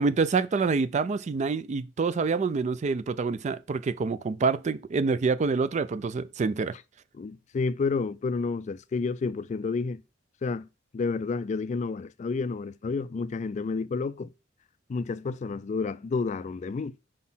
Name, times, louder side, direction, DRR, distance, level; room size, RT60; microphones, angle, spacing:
voice 1, 0.0-6.7, right 4 dB, 35° right, 0.3 m, -26 dB
voice 2, 7.1-10.0 10.4-10.7 10.9-14.3 14.9-16.9, left 4 dB, 40° left, 0.3 m, -30 dB
5.1 x 4.1 x 5.5 m
head